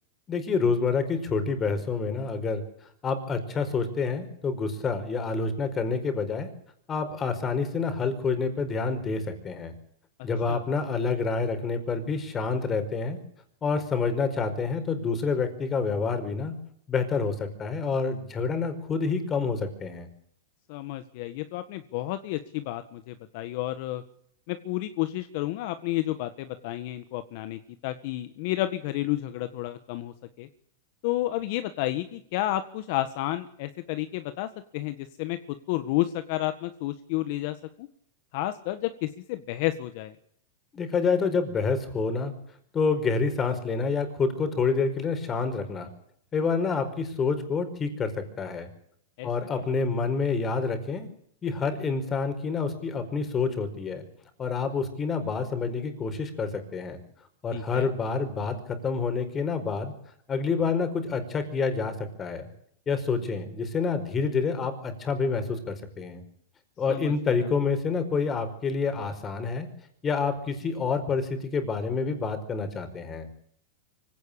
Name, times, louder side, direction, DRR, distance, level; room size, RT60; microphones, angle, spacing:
voice 1, 0.3-2.6 3.0-6.5 6.9-9.7 10.2-13.2 13.6-16.5 16.9-20.1 40.7-42.3 42.7-45.9 46.3-48.7 49.2-51.1 51.4-54.0 54.4-57.0 57.4-59.9 60.3-62.5 62.9-66.2 66.8-69.7 70.0-73.3, left 4 dB, 20° left, 9 dB, 4.9 m, -28 dB
voice 2, 20.7-24.0 24.5-30.5 31.0-35.4 35.7-37.9 38.3-40.1 49.2-49.3 57.5-57.9 66.9-67.5, left 15 dB, 50° left, 10 dB, 1.5 m, -31 dB
24.5 x 17.0 x 8.7 m, 0.67 s
supercardioid pair, 145°, 0 cm